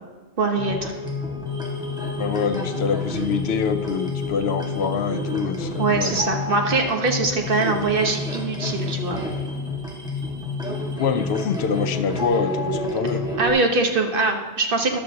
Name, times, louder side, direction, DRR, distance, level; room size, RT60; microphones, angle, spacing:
voice 1, 0.4-0.9 5.8-9.2 13.4-15.0, right 3 dB, 60° right, 3 dB, 1.3 m, -22 dB
sound 1, 0.6-13.5, left 2 dB, 5° right, 1.6 m, -29 dB
voice 2, 2.2-6.2 11.0-13.2, left 6 dB, 90° left, 10 dB, 0.9 m, -25 dB
14.0 x 11.0 x 2.8 m, 1.3 s
omnidirectional pair, 1.1 m